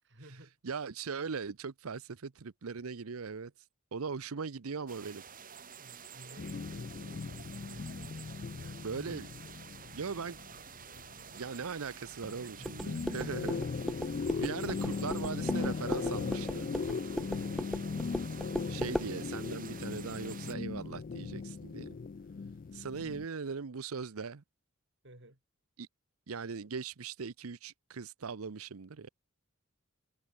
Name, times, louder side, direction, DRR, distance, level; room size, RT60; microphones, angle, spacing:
voice 1, 0.0-0.6 5.8-8.9 12.2-12.8 17.3-17.6 25.0-25.4, right 1 dB, 55° right, 6.0 m, -56 dB
voice 2, 0.6-3.5 3.9-5.2 8.8-9.3 9.9-10.4 11.3-13.6 14.4-16.7 18.7-22.0 22.7-24.4 25.8-25.9 26.3-29.1, right 5 dB, 85° right, 0.7 m, -39 dB
sound 1, 4.9-20.5, right 7 dB, 40° right, 6.2 m, -50 dB
sound 2, 6.4-11.9 12.2-23.3, left 4 dB, 40° left, 0.4 m, -38 dB
sound 3, 12.6-19.1, equal, ahead, 2.3 m, -38 dB
head